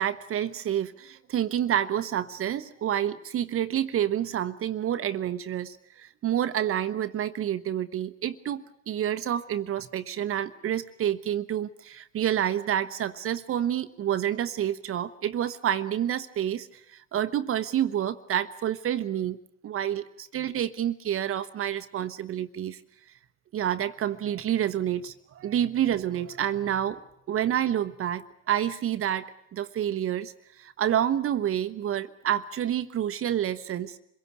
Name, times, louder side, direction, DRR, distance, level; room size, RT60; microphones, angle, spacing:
voice 1, 0.0-19.4 19.6-22.8 23.5-34.0, right 10 dB, 45° right, 10 dB, 1.1 m, -28 dB
26.5 x 17.0 x 9.7 m, 0.76 s
supercardioid pair, 90°, 31 cm